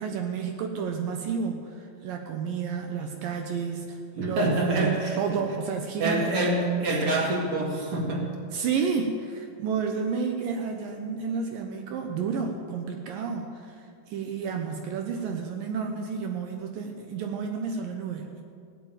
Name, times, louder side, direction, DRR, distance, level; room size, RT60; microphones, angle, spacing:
voice 1, 0.0-4.5 4.8-6.3 8.5-13.8 14.1-18.4, right 5 dB, 75° right, 4 dB, 2.2 m, -31 dB
voice 2, 4.2-5.4 6.0-8.3, right 2 dB, 40° right, -1 dB, 2.2 m, -26 dB
17.0 x 7.7 x 8.9 m, 2.3 s
omnidirectional pair, 4.9 m